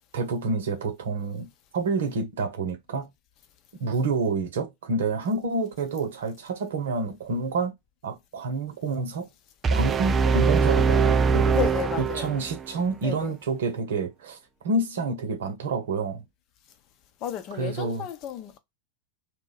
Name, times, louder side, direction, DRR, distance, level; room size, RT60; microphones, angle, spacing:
voice 1, 0.1-3.1 3.8-7.7 8.0-9.3 9.7-11.6 12.0-14.4 14.6-16.2 17.6-18.1, right 3 dB, 60° right, 0.9 m, -28 dB
sound 1, 9.6-12.7, right 5 dB, 20° right, 0.3 m, -22 dB
voice 2, 11.5-12.3 13.0-13.4 17.2-18.6, left 9 dB, 40° left, 0.7 m, -32 dB
2.9 x 2.3 x 3.9 m
figure-of-eight pair, 90°, 0 cm